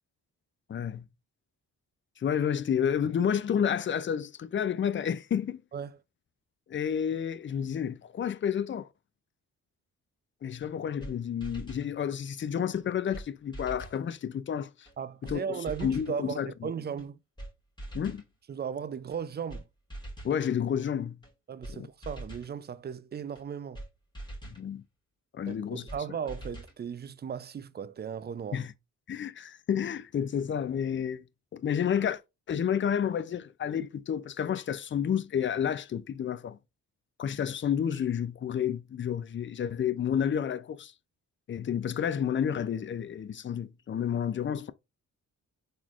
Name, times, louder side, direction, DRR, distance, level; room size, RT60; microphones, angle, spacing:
voice 1, 0.7-1.1 2.2-5.6 6.7-8.9 10.4-14.9 15.2-16.7 17.9-18.2 20.2-21.2 21.7-21.9 24.4-24.8 25.3-25.8 28.5-28.7 29.1-31.2 31.5-32.2 32.5-36.6 37.2-40.9 41.5-44.7, left 8 dB, 30° left, 0.4 m, -30 dB
sound 1, 10.6-10.7 11.0-11.1 11.4-11.9 12.7-12.8 13.1-13.3 13.5-14.0 14.9-15.0 15.2-15.4 15.6-16.1 17.0-17.1 17.4-17.5 17.8-18.3 19.1-19.2 19.5-19.6 19.9-20.4 21.2-21.3 21.6-21.8 22.0-22.5 23.4-23.5 23.7-23.9 24.1-24.6 25.5-25.6 25.9-26.0 26.3-26.8, right 1 dB, 10° left, 1.6 m, -42 dB
voice 2, 15.0-17.2 18.5-19.6 21.5-23.8 25.4-28.6, right 7 dB, 30° right, 0.4 m, -36 dB
3.8 x 3.1 x 2.4 m
supercardioid pair, 45°, 38 cm